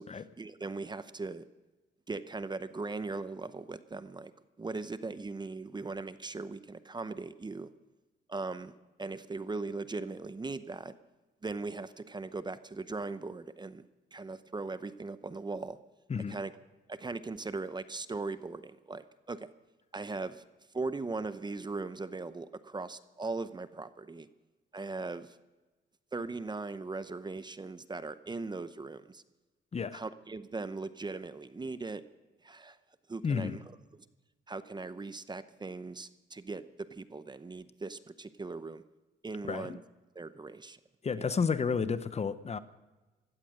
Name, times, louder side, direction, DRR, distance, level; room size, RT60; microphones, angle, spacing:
voice 1, 0.0-1.4 2.1-4.3 4.6-7.7 8.3-8.7 9.0-10.9 11.4-15.8 16.3-16.5 16.9-19.5 19.9-20.4 20.7-24.3 24.7-25.4 26.1-29.2 29.9-32.0 32.4-32.8 33.1-33.6 34.5-38.8 39.2-39.8 40.1-40.8 41.2-41.4, right 3 dB, 20° right, 0.8 m, -39 dB
voice 2, 29.7-30.0 33.2-33.6 39.4-39.8 41.0-42.6, left 5 dB, 35° left, 0.8 m, -31 dB
16.5 x 12.5 x 6.5 m
cardioid pair, 90°, 20 cm